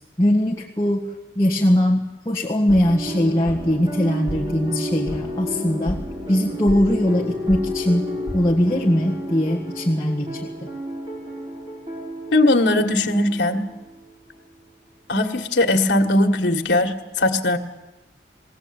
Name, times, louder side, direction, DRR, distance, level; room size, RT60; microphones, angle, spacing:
voice 1, 0.2-6.0 6.3-10.7, equal, 15° left, -5 dB, 1.6 m, -21 dB
just a dream, 2.7-14.1 14.4-14.5, equal, 25° right, 5.3 m, -31 dB
voice 2, 12.3-13.7 15.1-17.6, left 2 dB, 85° left, 4 dB, 1.8 m, -19 dB
21.5 x 16.5 x 9.0 m, 1.1 s
head